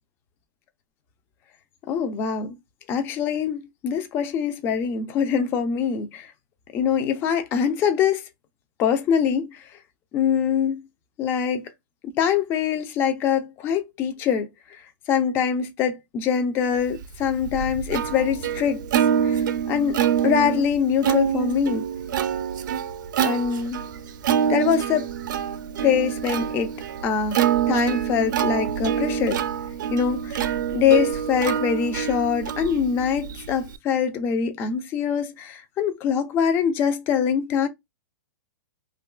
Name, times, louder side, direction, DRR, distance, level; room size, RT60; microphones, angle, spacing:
voice 1, 1.9-2.5 2.9-6.3 6.7-8.3 8.8-9.6 10.1-10.8 11.2-11.6 12.1-14.5 15.1-18.8 19.2-19.4 19.7-21.8 23.2-23.8 24.5-25.1 25.8-26.7 27.0-29.4 29.9-37.7, left 7 dB, 20° left, 0.3 m, -24 dB
Plucked string instrument, 17.0-33.8, right 9 dB, 65° right, 0.4 m, -26 dB
2.8 x 2.3 x 2.3 m
hypercardioid pair, 150°, 11 cm